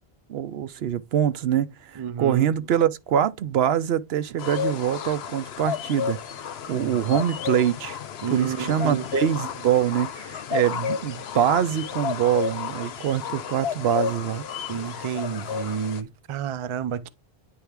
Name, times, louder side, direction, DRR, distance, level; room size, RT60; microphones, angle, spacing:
voice 1, 0.3-6.2 6.7-8.0 8.3-14.5, right 10 dB, 80° right, 0.9 m, -24 dB
voice 2, 2.0-2.5 6.7-7.2 8.2-9.1 14.7-17.1, right 8 dB, 45° right, 0.4 m, -30 dB
sound 1, 4.4-16.0, left 8 dB, 90° left, 0.9 m, -32 dB
9.5 x 3.5 x 3.4 m
omnidirectional pair, 1.0 m